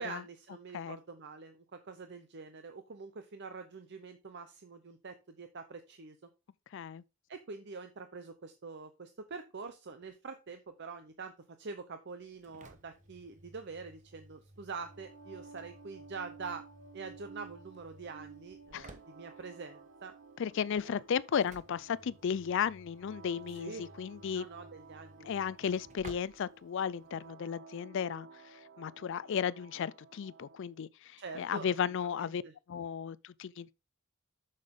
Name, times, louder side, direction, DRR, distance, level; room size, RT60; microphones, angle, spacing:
voice 1, 0.0-6.2 7.3-11.3 11.6-16.6 16.9-20.1 20.8-21.0 23.5-23.9 24.3-25.3 31.2-31.7 32.1-32.5, right 4 dB, 55° right, 0.7 m, -45 dB
voice 2, 6.7-7.0 18.7-18.9 20.4-24.4 25.2-28.3 28.8-32.4 32.7-33.7, left 7 dB, 60° left, 0.4 m, -34 dB
Engine / Slam, 12.2-27.3, right 2 dB, 35° right, 1.0 m, -57 dB
sound 1, 14.7-30.7, right 4 dB, 70° right, 1.1 m, -54 dB
7.7 x 6.6 x 3.6 m
head